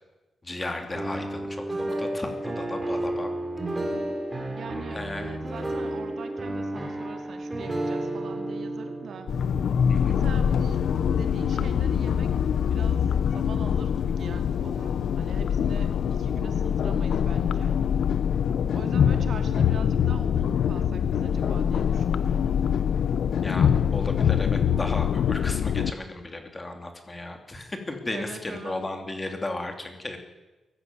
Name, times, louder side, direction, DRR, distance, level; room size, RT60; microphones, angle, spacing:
voice 1, 0.4-3.3 4.9-5.4 9.9-10.2 23.4-30.2, left 2 dB, 20° left, 5 dB, 2.9 m, -35 dB
sound 1, 0.9-10.9, right 1 dB, 20° right, 4.1 m, -32 dB
voice 2, 4.6-9.4 10.1-10.8 11.2-12.3 12.7-13.1 13.3-17.7 18.7-22.4 28.1-28.8, right 6 dB, 60° right, 7 dB, 2.6 m, -42 dB
sound 2, 9.3-25.9, left 8 dB, 70° left, 0.7 m, -24 dB
22.5 x 15.0 x 9.5 m, 1.1 s
wide cardioid pair, 155°, 0 cm